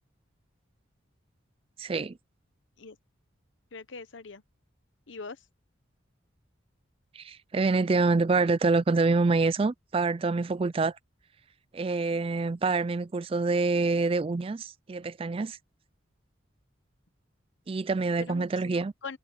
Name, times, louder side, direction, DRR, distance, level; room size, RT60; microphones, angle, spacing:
voice 1, 1.8-2.2 7.2-10.9 11.7-15.6 17.7-18.9, right 3 dB, 30° right, 0.4 m, -26 dB
voice 2, 3.7-4.4 5.1-5.4 18.2-19.2, left 4 dB, 75° left, 1.0 m, -42 dB
head